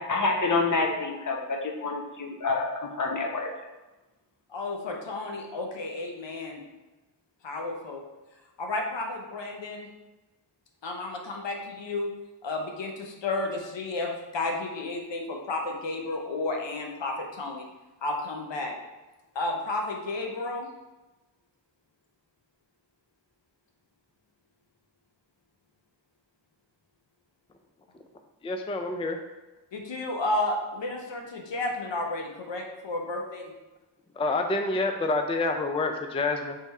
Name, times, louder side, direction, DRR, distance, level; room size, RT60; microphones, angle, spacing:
voice 1, 0.0-3.5, left 3 dB, 45° left, 1 dB, 0.8 m, -27 dB
voice 2, 4.5-6.6 7.4-8.0 8.6-9.9 10.8-12.1 12.4-17.7 18.0-18.7 19.3-20.7 29.7-33.5, left 2 dB, 85° left, 2 dB, 0.8 m, -32 dB
voice 3, 28.4-29.2 34.2-36.6, left 2 dB, 15° left, 5 dB, 0.4 m, -27 dB
3.6 x 3.4 x 4.1 m, 1.1 s
cardioid pair, 50°, 43 cm